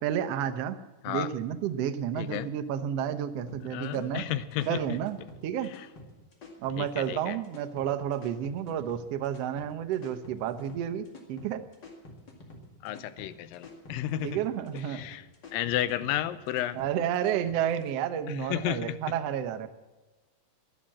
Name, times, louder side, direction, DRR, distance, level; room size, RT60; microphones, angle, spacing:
voice 1, 0.0-0.8 1.1-4.3 4.7-5.7 6.6-11.6 14.2-15.0 16.7-19.7, right 9 dB, 85° right, 9 dB, 1.4 m, -31 dB
voice 2, 2.2-2.5 3.7-4.8 6.8-7.4 12.8-14.4 14.7-15.2 15.5-16.8 18.3-19.0, left 12 dB, 90° left, 14 dB, 2.4 m, -32 dB
sound 1, 3.5-17.9, left 2 dB, 35° left, 2.2 m, -49 dB
11.5 x 11.5 x 7.6 m, 1.2 s
omnidirectional pair, 4.0 m